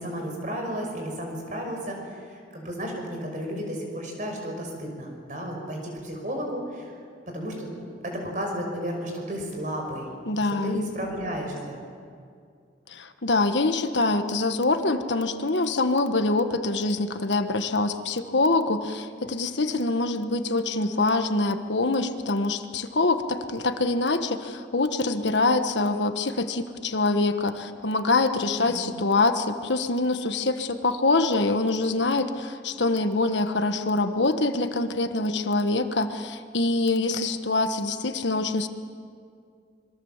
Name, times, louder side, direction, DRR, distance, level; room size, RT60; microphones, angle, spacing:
voice 1, 0.0-6.9 7.3-10.1 10.6-11.8 28.5-29.0, equal, 45° right, 1 dB, 5.8 m, -33 dB
voice 2, 10.3-10.9 12.9-38.7, left 2 dB, 80° left, 8 dB, 1.4 m, -25 dB
26.0 x 23.0 x 7.4 m, 2.3 s
head